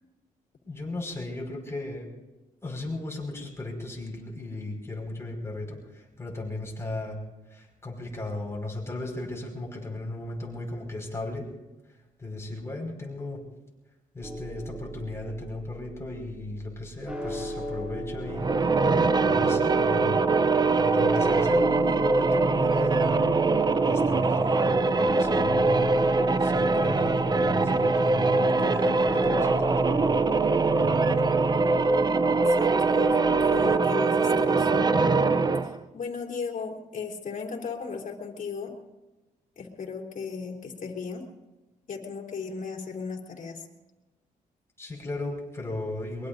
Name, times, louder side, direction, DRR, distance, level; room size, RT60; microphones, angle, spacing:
voice 1, 0.6-2.1 2.6-7.2 7.5-11.5 12.2-13.4 14.1-18.5 19.3-20.2 20.7-23.2 23.8-25.9 26.4-30.1 30.8-31.3 44.8-46.3, left 2 dB, 15° left, 0 dB, 5.5 m, -36 dB
sound 1, 14.2-33.6, equal, 5° right, 3.3 m, -38 dB
sound 2, 18.3-35.8, right 3 dB, 25° right, 0.6 m, -23 dB
voice 2, 32.3-34.7 35.6-38.7 39.6-41.2 41.9-43.6, left 5 dB, 60° left, 0 dB, 3.4 m, -36 dB
23.0 x 22.5 x 2.7 m, 1.1 s
cardioid pair, 100°, 15 cm